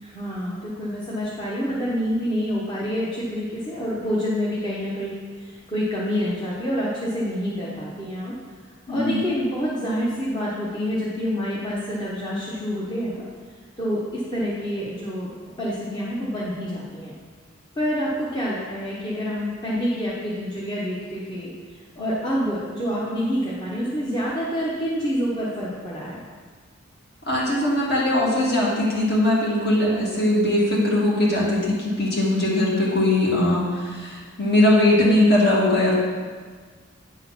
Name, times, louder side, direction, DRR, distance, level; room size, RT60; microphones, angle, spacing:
voice 1, 0.0-5.1 5.4-8.3 8.9-13.2 13.8-15.3 15.6-17.1 17.8-21.5 22.0-26.2, equal, 20° left, -7 dB, 1.0 m, -27 dB
voice 2, 8.9-9.3 27.3-35.9, left 1 dB, 50° left, -5 dB, 2.1 m, -20 dB
9.3 x 3.8 x 5.8 m, 1.5 s
head